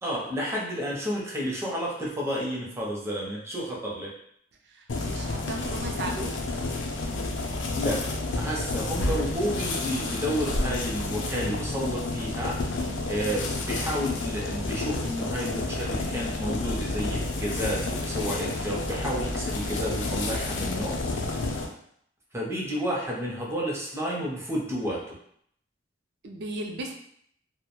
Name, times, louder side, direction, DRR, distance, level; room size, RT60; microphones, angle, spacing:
voice 1, 0.0-4.1 7.7-8.1 8.3-12.6 13.1-21.0 22.3-25.1, equal, 15° right, -3 dB, 0.5 m, -31 dB
voice 2, 4.7-6.3 26.2-26.9, right 2 dB, 65° right, 3 dB, 0.4 m, -35 dB
sound 1, 4.9-21.7, left 2 dB, 85° left, 0.4 m, -30 dB
2.2 x 2.1 x 2.9 m, 0.67 s
head